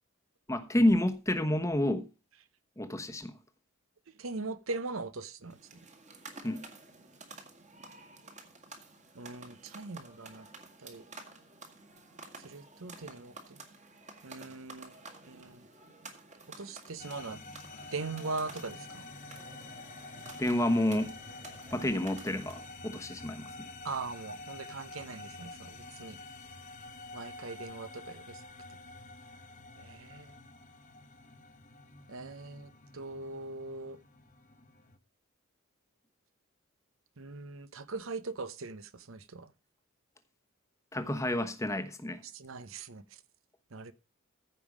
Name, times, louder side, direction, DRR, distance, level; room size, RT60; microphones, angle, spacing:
voice 1, 0.5-2.1 2.8-3.3 6.4-6.6 20.4-21.1 21.7-23.7 40.9-42.2, left 1 dB, 15° left, 1.0 m, -29 dB
voice 2, 4.1-5.8 8.2-8.3 9.1-10.5 10.8-11.0 12.4-13.6 14.2-15.0 15.3-15.7 16.6-17.4 17.9-19.1 23.8-26.2 27.1-28.4 29.8-30.4 32.1-34.0 37.2-39.5 42.2-43.2 43.7-43.9, right 3 dB, 65° right, 0.8 m, -41 dB
sound 1, 5.4-22.8, right 3 dB, 35° right, 2.0 m, -52 dB
sound 2, 17.0-35.0, left 3 dB, 35° left, 1.1 m, -48 dB
15.0 x 5.4 x 5.0 m
head